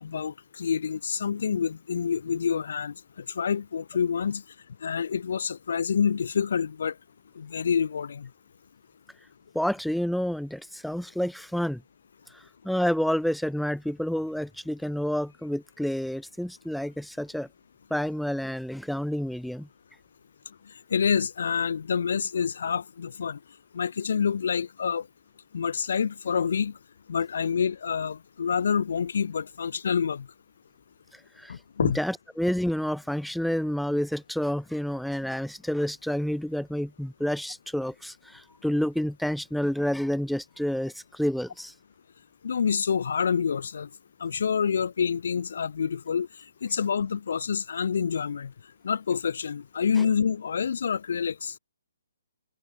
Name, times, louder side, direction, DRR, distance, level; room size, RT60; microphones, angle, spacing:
voice 1, 0.0-4.4 4.8-6.9 7.3-8.3 20.9-23.4 23.7-25.1 25.5-26.7 27.1-30.3 31.5-32.0 42.4-43.9 44.2-46.3 46.6-48.5 48.8-51.5, left 6 dB, 65° left, 3.2 m, -27 dB
voice 2, 9.5-11.8 12.3-17.5 17.9-19.7 31.4-31.6 31.8-41.7 50.0-50.1, equal, ahead, 2.5 m, -29 dB
hypercardioid pair, 145°, 0 cm